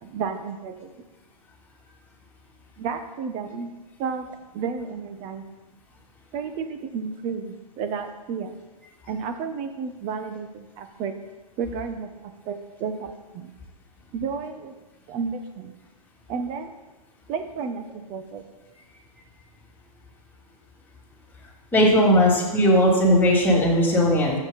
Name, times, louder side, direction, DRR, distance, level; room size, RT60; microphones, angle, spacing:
voice 1, 0.0-0.9 2.8-3.7 4.0-4.3 4.5-5.4 6.3-8.5 9.1-11.1 11.6-13.5 14.1-14.7 15.1-15.7 16.3-16.7 17.3-18.4, right 5 dB, 35° right, 8 dB, 1.3 m, -32 dB
voice 2, 21.7-24.4, equal, 10° left, -4 dB, 3.0 m, -18 dB
14.0 x 7.7 x 4.3 m, 1.2 s
hypercardioid pair, 125°, 19 cm